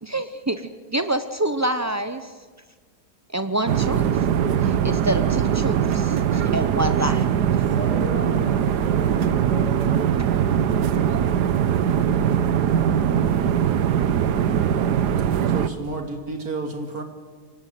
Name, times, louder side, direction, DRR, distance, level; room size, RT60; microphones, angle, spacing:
voice 1, 0.0-2.3 3.3-4.1 4.6-7.3, right 1 dB, 25° right, 10 dB, 0.3 m, -26 dB
sound 1, 3.7-15.7, right 9 dB, 80° right, 1.5 m, -21 dB
voice 2, 7.6-9.9, left 1 dB, 25° left, 0 dB, 7.8 m, -35 dB
voice 3, 15.5-17.0, right 3 dB, 60° right, 5 dB, 2.9 m, -31 dB
25.0 x 19.0 x 9.4 m, 1.5 s
omnidirectional pair, 1.7 m